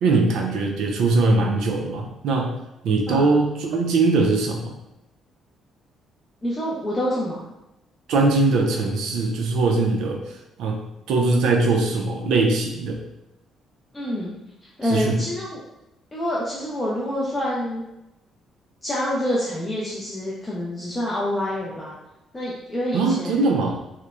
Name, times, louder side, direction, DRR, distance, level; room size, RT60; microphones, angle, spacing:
voice 1, 0.0-2.5 2.8-4.7 8.1-10.2 10.6-10.8 11.1-13.0 14.8-15.2 22.9-23.8, right 3 dB, 70° right, 2 dB, 0.4 m, -21 dB
voice 2, 6.4-7.4 13.9-14.3 14.6-15.6 16.1-17.8 18.8-21.9 22.3-23.4, left 1 dB, 15° left, -6 dB, 0.3 m, -27 dB
2.9 x 2.0 x 2.3 m, 0.91 s
cardioid pair, 170°, 0 cm